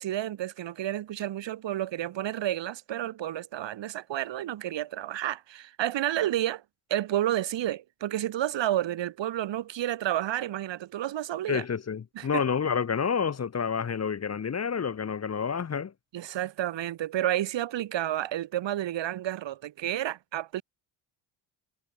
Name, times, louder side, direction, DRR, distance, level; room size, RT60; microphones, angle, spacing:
voice 1, 0.0-6.6 6.9-11.6 12.1-12.4 16.1-20.6, right 12 dB, 60° right, 2.9 m, -30 dB
voice 2, 11.5-15.9, left 6 dB, 30° left, 1.4 m, -29 dB
supercardioid pair, 75°, 48 cm